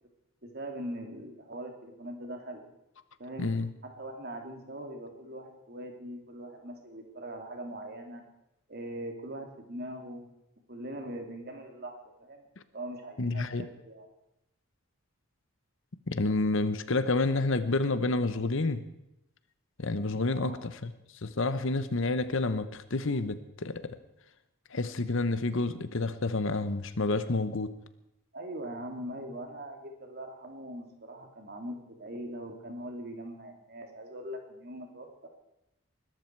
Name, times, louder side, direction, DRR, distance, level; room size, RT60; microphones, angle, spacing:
voice 1, 0.4-2.6 3.2-3.5 3.8-8.2 8.7-10.2 10.7-12.4 12.7-14.1 20.3-20.7 28.3-35.3, right 1 dB, 45° right, 2.7 m, -41 dB
voice 2, 3.4-3.7 13.2-13.7 16.1-18.8 19.8-20.9 21.2-24.0 24.7-27.7, left 2 dB, 60° left, 0.9 m, -29 dB
21.0 x 13.0 x 4.6 m
head